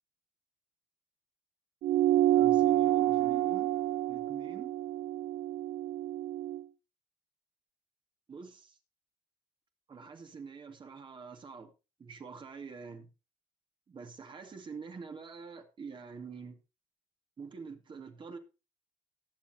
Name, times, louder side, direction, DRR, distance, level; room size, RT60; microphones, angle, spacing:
sound 1, 1.8-6.6, right 13 dB, 65° right, 0.5 m, -28 dB
voice 1, 2.4-3.7 4.1-4.7 8.3-8.8 9.9-11.7 12.0-13.1 13.9-16.6 17.4-18.4, right 5 dB, 35° right, 2.4 m, -45 dB
19.0 x 7.2 x 3.0 m
cardioid pair, 105°, 15 cm